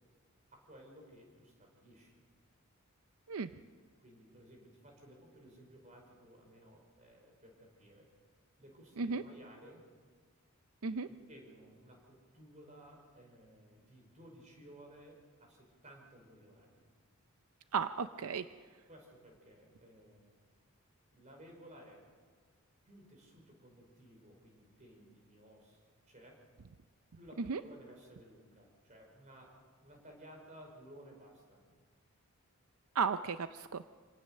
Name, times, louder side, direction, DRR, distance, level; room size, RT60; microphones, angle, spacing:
voice 1, 0.5-2.2 4.0-8.1 8.6-9.9 11.0-16.9 18.9-20.4 21.1-22.1 22.9-26.4 27.1-31.7, right 1 dB, 35° right, 1 dB, 5.1 m, -57 dB
voice 2, 17.7-18.5 27.5-27.6 32.9-33.8, right 5 dB, 80° right, 11 dB, 0.5 m, -34 dB
25.5 x 18.0 x 6.6 m, 1.6 s
head